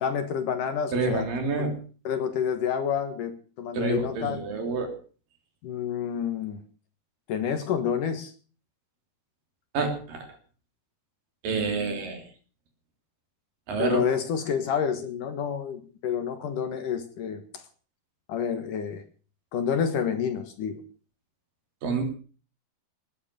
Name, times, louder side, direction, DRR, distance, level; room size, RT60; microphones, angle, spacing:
voice 1, 0.0-1.3 2.0-4.4 5.6-6.6 7.3-8.3 13.8-17.6 18.3-19.0 19.5-20.8, left 7 dB, 60° left, 9 dB, 2.7 m, -29 dB
voice 2, 0.9-1.8 3.7-5.0 9.7-10.3 11.4-12.2 13.7-14.1 21.8-22.0, right 4 dB, 60° right, 5 dB, 4.7 m, -28 dB
19.5 x 9.9 x 6.8 m, 0.40 s
omnidirectional pair, 4.6 m